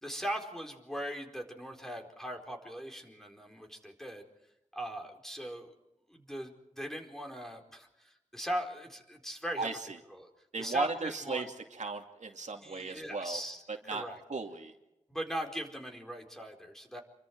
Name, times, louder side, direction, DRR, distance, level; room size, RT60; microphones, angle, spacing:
voice 1, 0.0-4.2 4.7-5.7 6.1-9.7 10.1-10.3 10.6-11.5 12.6-14.2 15.1-17.0, equal, 5° left, 2 dB, 4.5 m, -39 dB
voice 2, 9.6-10.0 10.5-11.5 11.8-13.4 13.9-14.0 14.3-14.7, right 4 dB, 70° right, 3 dB, 2.6 m, -36 dB
28.5 x 24.0 x 4.7 m, 0.91 s
wide cardioid pair, 85°, 13 cm